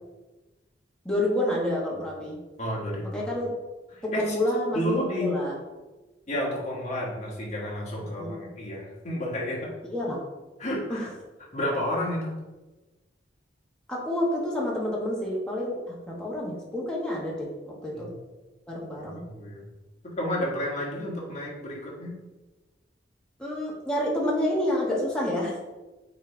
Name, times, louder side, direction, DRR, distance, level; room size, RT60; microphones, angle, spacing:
voice 1, 1.0-2.4 3.1-3.5 4.0-5.6 8.2-8.5 9.9-10.3 10.9-11.1 13.9-18.1 18.7-19.2 23.4-25.6, left 1 dB, 5° left, -5 dB, 1.6 m, -29 dB
voice 2, 2.6-3.2 3.9-4.4 4.7-5.4 6.3-9.7 10.6-11.1 11.5-12.3 18.0-18.1 19.0-19.7 20.0-22.1, left 1 dB, 40° left, -5 dB, 1.9 m, -31 dB
9.1 x 3.4 x 3.4 m, 1.1 s
head